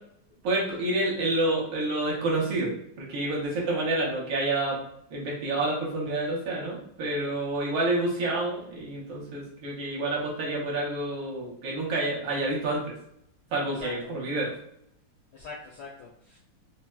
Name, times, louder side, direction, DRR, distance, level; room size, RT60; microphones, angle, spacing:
voice 1, 0.4-2.7 3.0-4.8 5.1-12.9 13.5-14.5, right 2 dB, 70° right, -3 dB, 1.4 m, -28 dB
voice 2, 13.7-14.2 15.3-16.4, left 4 dB, 80° left, -3 dB, 0.9 m, -43 dB
4.0 x 2.0 x 2.2 m, 0.73 s
omnidirectional pair, 2.3 m